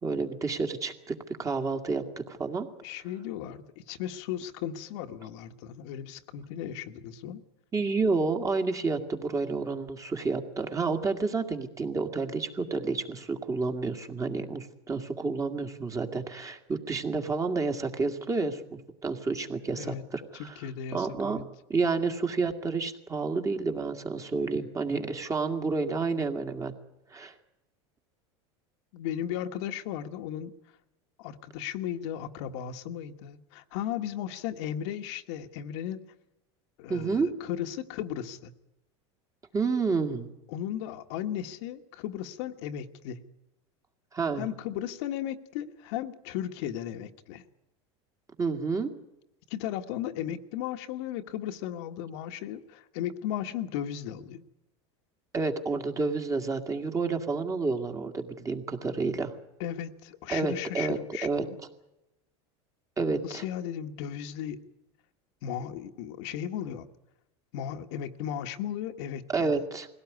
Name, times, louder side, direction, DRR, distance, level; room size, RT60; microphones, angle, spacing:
voice 1, 0.0-2.7 7.7-20.6 20.9-21.4 21.7-26.7 27.1-27.3 36.9-37.3 39.5-40.3 44.1-44.5 48.4-48.9 55.3-59.3 60.3-61.4 63.0-63.4 69.3-69.9, right 4 dB, 20° right, 6 dB, 2.1 m, -30 dB
voice 2, 2.8-7.4 19.7-20.1 20.4-21.4 28.9-30.5 31.2-36.0 36.8-38.5 40.5-43.2 44.4-47.4 49.5-54.4 59.6-61.6 63.2-64.6 65.4-66.9 67.5-69.6, left 10 dB, 70° left, 6 dB, 1.5 m, -36 dB
21.0 x 17.0 x 9.5 m, 0.92 s
supercardioid pair, 115°, 15 cm